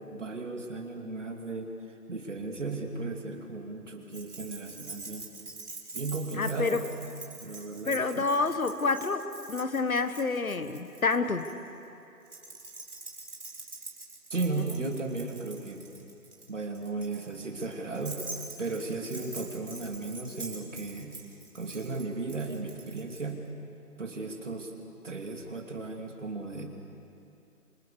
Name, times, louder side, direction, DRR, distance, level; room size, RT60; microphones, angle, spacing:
voice 1, 0.0-1.7 2.1-5.3 5.9-6.9 7.4-8.3 14.3-15.9 16.5-18.2 18.6-21.1 21.5-23.4 24.0-24.7 25.0-26.7, right 3 dB, 50° right, 3 dB, 2.7 m, -35 dB
Keys jangling, 4.1-11.5 12.3-23.2, right 3 dB, 70° right, 4.2 m, -45 dB
voice 2, 6.3-6.8 7.8-11.5 14.6-14.9, left 4 dB, 60° left, 10 dB, 1.5 m, -28 dB
27.0 x 23.0 x 7.0 m, 2.8 s
figure-of-eight pair, 175°, 46 cm